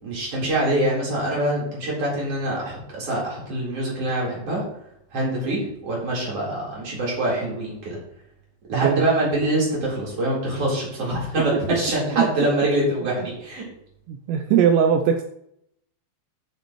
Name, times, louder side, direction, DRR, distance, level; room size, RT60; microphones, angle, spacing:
voice 1, 0.0-4.6 5.1-8.0 8.7-13.7, right 1 dB, 30° right, -4 dB, 4.4 m, -24 dB
voice 2, 8.7-9.1 12.1-12.3 14.1-15.2, right 8 dB, 85° right, 6 dB, 2.5 m, -20 dB
10.5 x 10.0 x 3.1 m, 0.75 s
omnidirectional pair, 5.6 m